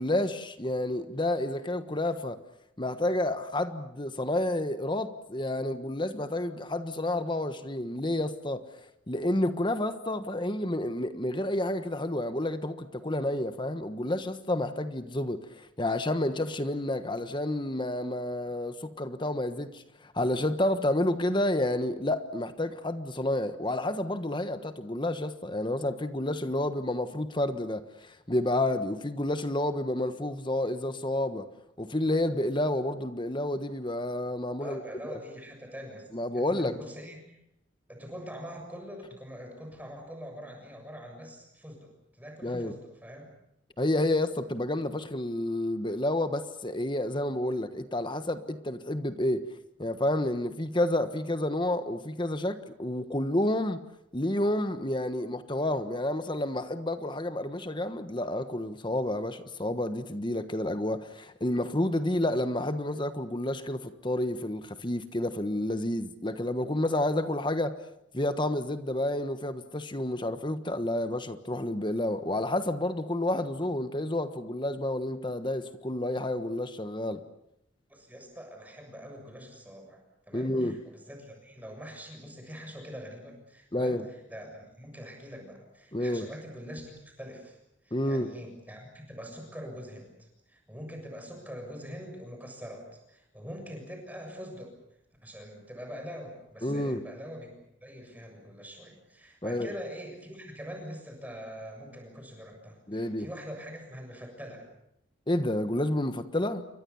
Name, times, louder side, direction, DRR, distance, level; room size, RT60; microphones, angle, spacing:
voice 1, 0.0-2.4 2.8-8.6 9.1-31.5 31.8-35.2 36.1-36.8 42.4-42.7 43.8-49.5 49.8-53.8 54.1-67.8 68.1-77.2 80.3-80.8 83.7-84.0 85.9-86.3 87.9-88.3 96.6-97.0 99.4-99.7 102.9-103.3 105.3-106.7, left 1 dB, 25° left, 1.3 m, -30 dB
voice 2, 34.6-36.1 36.3-37.4 37.9-43.3 77.9-87.6 87.8-94.7 95.2-97.5 97.8-104.6, equal, 10° right, 7.2 m, -44 dB
29.5 x 23.5 x 7.1 m
head